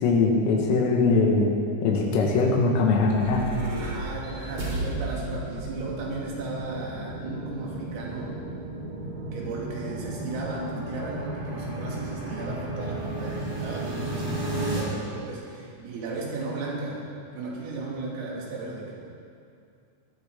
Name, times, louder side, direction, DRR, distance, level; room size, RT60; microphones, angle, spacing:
voice 1, 0.0-1.6 1.8-3.4, left 3 dB, 80° left, -2 dB, 4.3 m, -21 dB
sound 1, 2.8-14.8, right 1 dB, 30° right, 3.6 m, -34 dB
voice 2, 3.8-8.4 9.3-17.0 17.3-19.0, right 3 dB, 90° right, -4 dB, 5.2 m, -35 dB
20.0 x 14.0 x 3.8 m, 2.4 s
omnidirectional pair, 5.8 m